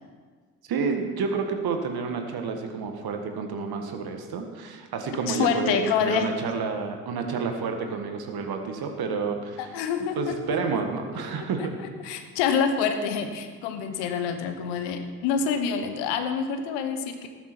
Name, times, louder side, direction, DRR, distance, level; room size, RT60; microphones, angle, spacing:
voice 1, 0.7-9.6 10.1-11.8, right 5 dB, 55° right, 4 dB, 1.8 m, -29 dB
voice 2, 5.3-6.3 9.6-10.3 11.3-11.7 12.0-17.3, left 6 dB, 65° left, 8 dB, 1.3 m, -27 dB
14.0 x 12.5 x 4.5 m, 1.5 s
figure-of-eight pair, 45°, 45 cm